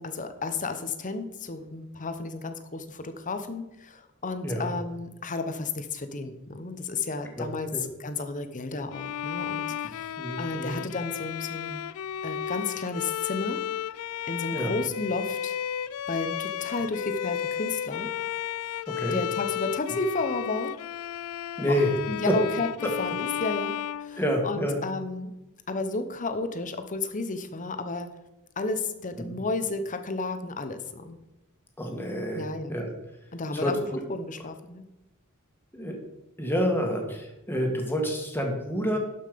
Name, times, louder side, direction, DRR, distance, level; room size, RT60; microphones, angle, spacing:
voice 1, 0.0-7.7 8.0-11.8 12.2-13.6 14.3-15.6 16.1-18.1 19.1-20.7 21.7-21.8 22.1-22.7 23.0-23.7 24.0-25.3 25.7-28.1 28.6-31.2 32.3-32.8 33.3-33.8 34.1-34.9, left 3 dB, 35° left, 9 dB, 0.9 m, -32 dB
Bowed string instrument, 8.9-24.8, left 9 dB, 75° left, 0.3 m, -33 dB
voice 2, 10.2-10.8 14.5-14.7 18.9-19.2 21.6-21.9 22.3-22.4 22.8-22.9 24.2-24.8 29.2-29.4 31.8-32.9 33.5-33.7 35.7-36.0 36.4-39.0, equal, 10° left, 1 dB, 1.8 m, -28 dB
12.5 x 5.7 x 5.2 m, 0.94 s
head